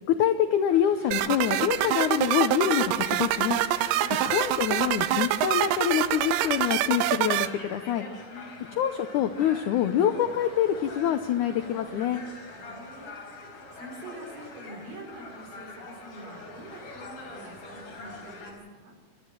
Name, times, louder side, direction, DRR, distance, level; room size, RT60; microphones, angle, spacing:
voice 1, 0.2-3.6 4.3-8.1 8.8-12.2, left 10 dB, 85° left, 9 dB, 1.7 m, -26 dB
sound 1, 0.7-18.5, left 2 dB, 60° left, 6.0 m, -44 dB
sound 2, 1.1-7.5, right 12 dB, 75° right, 2.0 m, -25 dB
Laughter, 5.9-8.6 8.9-11.8, right 1 dB, 30° right, 5.2 m, -50 dB
voice 2, 8.3-8.8 12.5-13.1 13.7-18.9, right 1 dB, 60° right, 1 dB, 6.1 m, -45 dB
26.0 x 13.0 x 7.6 m, 1.4 s
omnidirectional pair, 4.5 m